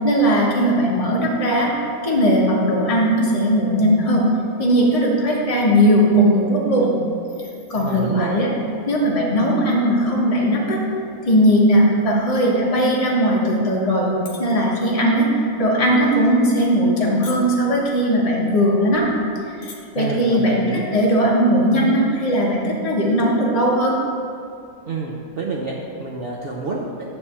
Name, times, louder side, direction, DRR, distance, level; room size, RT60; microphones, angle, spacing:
voice 1, 0.0-1.7 2.0-4.3 4.6-6.9 7.7-8.5 8.9-10.8 11.3-14.1 14.4-19.1 19.5-19.6 19.9-24.0, equal, 25° left, -4 dB, 1.3 m, -18 dB
voice 2, 7.7-8.3 19.9-20.8 24.8-27.0, right 3 dB, 50° right, -3 dB, 0.8 m, -28 dB
sound 1, 14.2-14.5 14.9-15.2 15.8-16.0 16.7-17.0 17.2-17.7 18.5-18.6 18.8-18.9 19.5-19.8 20.1-20.4, left 4 dB, 75° left, 1.5 m, -38 dB
9.8 x 3.4 x 6.9 m, 2.6 s
omnidirectional pair, 1.5 m